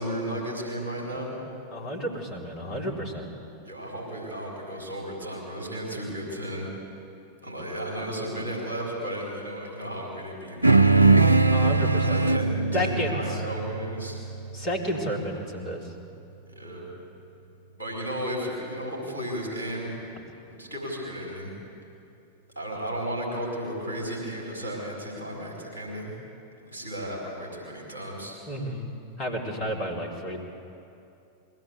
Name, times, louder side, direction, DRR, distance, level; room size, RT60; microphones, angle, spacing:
voice 1, 0.0-1.4 3.6-6.7 7.4-11.2 12.0-14.2 16.5-16.9 17.7-20.0 20.6-21.5 22.5-26.1 26.6-28.3, equal, 80° left, -3 dB, 4.8 m, -34 dB
voice 2, 1.7-3.3 11.4-12.2 12.7-13.4 14.5-15.9 28.5-28.9 29.2-30.4, equal, 40° left, -1 dB, 3.9 m, -31 dB
sound 1, 10.6-15.4, right 3 dB, 85° right, 0.4 m, -21 dB
21.5 x 16.0 x 8.2 m, 2.7 s
figure-of-eight pair, 90°, 0 cm